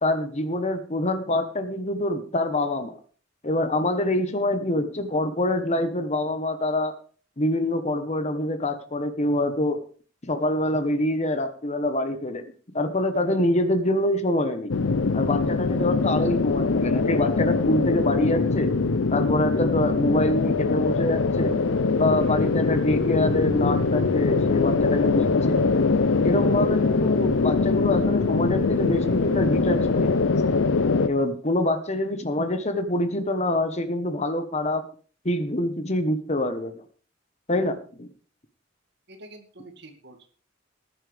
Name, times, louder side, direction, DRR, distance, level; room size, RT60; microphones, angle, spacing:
voice 1, 0.0-3.0 3.4-6.9 7.4-9.8 10.3-12.5 12.7-14.7 15.1-18.7 19.1-21.5 22.0-25.6 26.2-30.2 31.1-34.9 35.2-36.8 37.5-38.1, left 1 dB, 35° left, 9 dB, 1.2 m, -25 dB
sound 1, 14.7-31.1, left 4 dB, 85° left, 0.6 m, -22 dB
sound 2, 21.3-30.2, equal, 30° right, 1.6 m, -40 dB
voice 2, 39.1-40.3, right 2 dB, 60° right, 5 dB, 2.2 m, -46 dB
19.0 x 10.0 x 3.5 m, 0.42 s
head